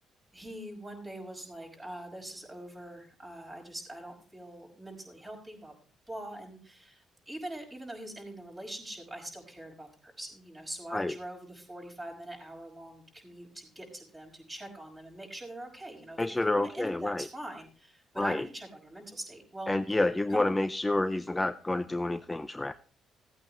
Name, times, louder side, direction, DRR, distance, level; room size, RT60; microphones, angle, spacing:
voice 1, 0.3-5.7 6.1-20.6, right 1 dB, 20° right, 2 dB, 5.5 m, -43 dB
voice 2, 16.2-17.2 18.2-18.4 19.7-22.7, left 2 dB, 15° left, 8 dB, 0.6 m, -29 dB
17.0 x 8.7 x 3.1 m, 0.41 s
cardioid pair, 90°, 0 cm